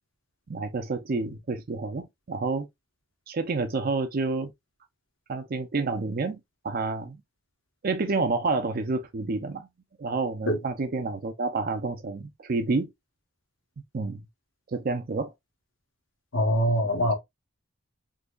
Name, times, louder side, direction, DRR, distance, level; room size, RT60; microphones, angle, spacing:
voice 1, 0.5-2.7 3.3-4.5 5.3-6.4 6.6-7.2 7.8-9.7 10.0-12.9 13.9-14.2 14.7-15.3 16.8-16.9, right 3 dB, 45° right, 0.5 m, -29 dB
voice 2, 16.3-17.1, equal, 75° left, 1.1 m, -23 dB
3.8 x 2.9 x 2.3 m
head